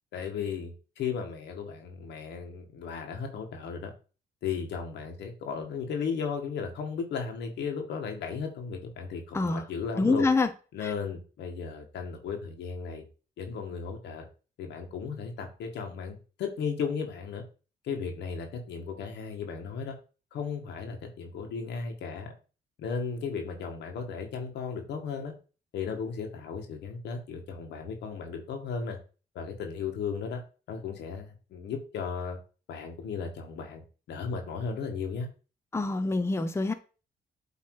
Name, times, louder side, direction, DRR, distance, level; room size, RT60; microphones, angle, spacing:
voice 1, 0.1-3.9 4.4-10.3 10.7-13.0 13.4-14.2 14.6-17.4 17.8-19.9 20.3-22.3 22.8-25.3 25.7-29.0 29.3-30.4 30.7-32.4 32.7-33.8 34.1-35.3, left 6 dB, 90° left, 1.6 m, -35 dB
voice 2, 10.0-10.5 10.8-10.9 35.7-36.7, left 3 dB, 15° left, 0.6 m, -26 dB
8.3 x 3.2 x 4.7 m
cardioid pair, 100°, 17 cm